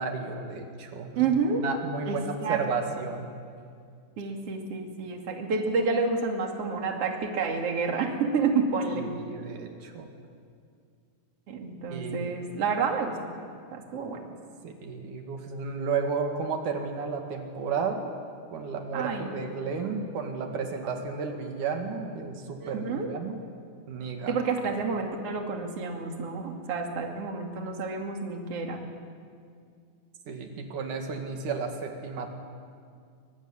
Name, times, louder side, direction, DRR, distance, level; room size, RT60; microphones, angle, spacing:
voice 1, 0.0-1.2 1.5-3.3 9.1-10.1 11.9-12.3 14.6-18.2 18.5-23.4 23.9-24.3 30.3-32.3, right 5 dB, 85° right, 3 dB, 3.7 m, -33 dB
voice 2, 1.2-1.6 2.1-2.6 4.2-9.1 11.5-13.3 13.7-14.3 18.9-20.0 22.6-23.1 24.3-28.8, right 4 dB, 50° right, 2 dB, 3.4 m, -29 dB
24.0 x 23.5 x 9.9 m, 2.2 s
omnidirectional pair, 3.5 m